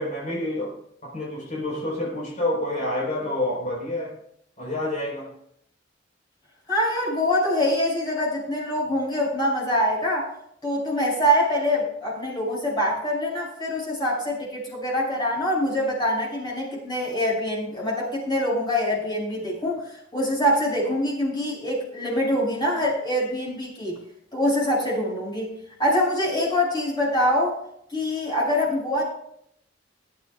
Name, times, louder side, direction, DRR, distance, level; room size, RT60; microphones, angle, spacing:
voice 1, 0.0-4.2 4.6-5.3, left 1 dB, 45° left, -2 dB, 3.9 m, -28 dB
voice 2, 6.7-10.3 10.6-19.8 20.1-24.0 24.3-25.5 25.8-27.6 27.9-29.0, equal, 25° left, -5 dB, 5.7 m, -24 dB
21.0 x 11.0 x 2.3 m, 0.70 s
head